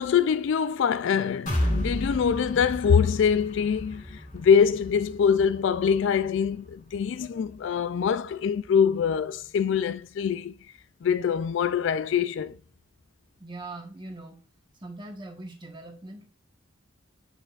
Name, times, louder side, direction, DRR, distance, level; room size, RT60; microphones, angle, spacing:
voice 1, 0.0-10.5 11.0-12.6, left 7 dB, 60° left, 0.3 m, -24 dB
sound 1, 1.5-9.2 9.6-9.8 10.2-10.3, equal, 35° left, 1.6 m, -34 dB
voice 2, 13.4-14.4 14.8-16.3, right 2 dB, 20° right, 1.2 m, -41 dB
8.4 x 5.0 x 2.4 m
head